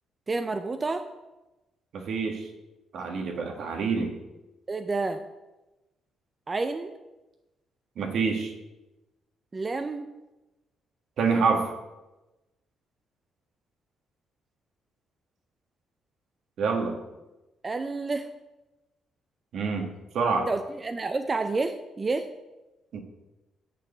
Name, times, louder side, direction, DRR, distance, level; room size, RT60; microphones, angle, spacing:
voice 1, 0.3-1.1 4.7-5.2 6.5-6.9 9.5-10.0 17.6-18.3 20.5-22.3, right 3 dB, 30° right, 7 dB, 0.5 m, -29 dB
voice 2, 1.9-2.4 2.9-4.1 8.0-8.5 11.2-11.7 16.6-17.0 19.5-20.5 22.9-23.0, right 4 dB, 70° right, 3 dB, 1.5 m, -27 dB
7.1 x 5.9 x 6.8 m, 1.0 s
cardioid pair, 90°, 0 cm